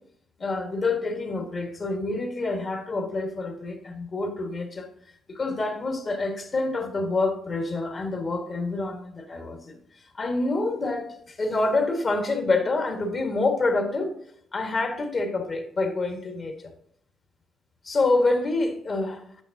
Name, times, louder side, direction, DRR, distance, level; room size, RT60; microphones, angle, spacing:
voice 1, 0.4-4.9 5.3-9.8 10.1-14.1 14.5-16.7 17.8-19.2, left 3 dB, 40° left, 1.6 m, -27 dB
9.0 x 6.1 x 2.7 m
cardioid pair, 90°, 0 cm